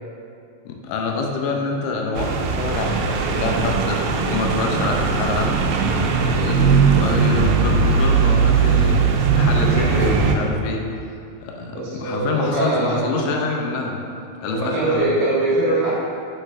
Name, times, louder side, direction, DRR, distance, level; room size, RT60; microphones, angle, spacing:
voice 1, 0.7-5.5 5.9-10.8 11.4-14.0 14.4-15.1, left 3 dB, 85° left, 1 dB, 3.0 m, -26 dB
sound 1, 2.2-10.4, right 5 dB, 90° right, 3.0 m, -19 dB
voice 2, 11.7-13.2 14.4-15.9, right 2 dB, 70° right, -8 dB, 2.9 m, -22 dB
8.2 x 6.2 x 2.6 m, 2.5 s
omnidirectional pair, 5.3 m